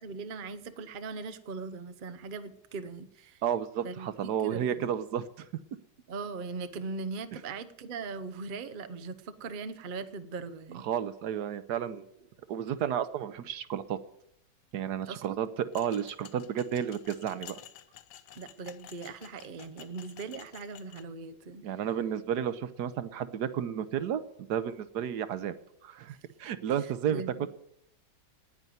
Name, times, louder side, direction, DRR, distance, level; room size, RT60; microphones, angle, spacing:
voice 1, 0.0-3.4 3.8-4.1 4.4-4.9 6.1-10.8 15.1-15.4 18.4-21.6 26.8-27.5, right 4 dB, 85° right, 10 dB, 0.4 m, -40 dB
voice 2, 3.4-5.5 10.7-12.2 12.5-14.0 14.7-17.6 21.6-24.2 24.5-25.5 25.8-27.5, right 9 dB, 65° right, 14 dB, 1.1 m, -32 dB
sound 1, 15.7-21.0, left 11 dB, 65° left, 1.2 m, -51 dB
9.9 x 9.6 x 9.2 m, 0.76 s
omnidirectional pair, 2.2 m